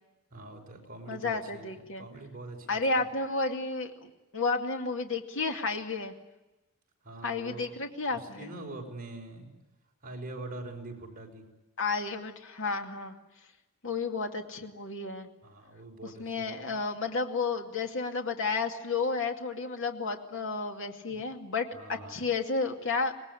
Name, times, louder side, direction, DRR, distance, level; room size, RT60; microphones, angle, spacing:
voice 1, 0.3-3.1 7.0-7.8 8.1-9.5 10.0-11.5 15.4-16.8 21.1-21.2 21.7-22.2, right 2 dB, 40° right, 1 dB, 5.7 m, -44 dB
voice 2, 1.1-2.1 2.7-6.1 7.2-8.5 11.8-13.1 13.8-15.3 16.2-23.1, left 4 dB, 60° left, 4 dB, 2.4 m, -32 dB
25.5 x 20.0 x 10.0 m, 1.0 s
head